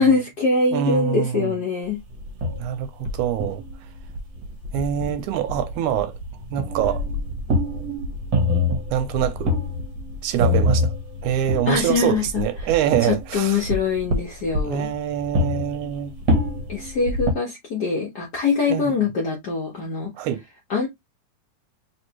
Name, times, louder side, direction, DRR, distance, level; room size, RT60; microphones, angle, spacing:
voice 1, 0.0-2.0 11.7-12.7 13.0-14.9 16.7-20.1 20.7-20.9, left 4 dB, 70° left, 0.9 m, -23 dB
voice 2, 0.7-1.5 2.6-3.6 4.7-6.1 6.5-7.0 8.9-9.6 10.2-11.0 11.2-13.6 14.6-16.1 18.7-18.9 20.2-20.4, right 10 dB, 85° right, 2.0 m, -24 dB
sound 1, 2.1-17.3, left 1 dB, 60° right, 1.2 m, -26 dB
4.4 x 3.3 x 2.9 m
omnidirectional pair, 3.6 m